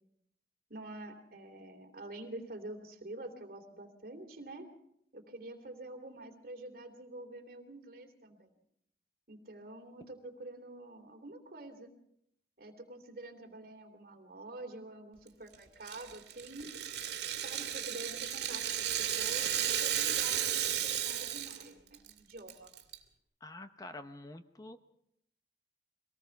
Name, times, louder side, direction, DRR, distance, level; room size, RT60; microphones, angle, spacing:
voice 1, 0.7-4.7 5.1-8.5 9.3-11.9 12.6-16.7 17.4-22.7, right 2 dB, 55° right, 5 dB, 2.9 m, -47 dB
Rattle (instrument), 15.9-21.7 21.9-22.1 22.5-22.9, right 10 dB, 70° right, 2.2 m, -34 dB
voice 2, 23.4-24.8, left 2 dB, 20° left, 9 dB, 0.7 m, -47 dB
24.5 x 18.5 x 5.8 m, 0.76 s
head